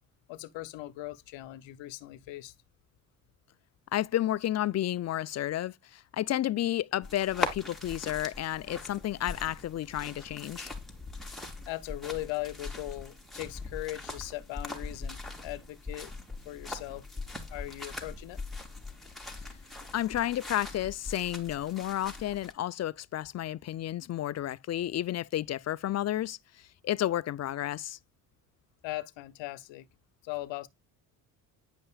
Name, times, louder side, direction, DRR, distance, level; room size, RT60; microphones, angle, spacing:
voice 1, 0.3-2.5 11.7-16.1 16.4-17.0 17.5-18.4 28.8-29.9 30.2-30.7, left 17 dB, 70° left, 0.9 m, -39 dB
voice 2, 3.9-10.7 19.9-28.0, left 13 dB, 35° left, 0.4 m, -31 dB
sound 1, 7.0-22.5, left 2 dB, ahead, 2.8 m, -41 dB
10.0 x 5.4 x 2.3 m
supercardioid pair, 60°, 46 cm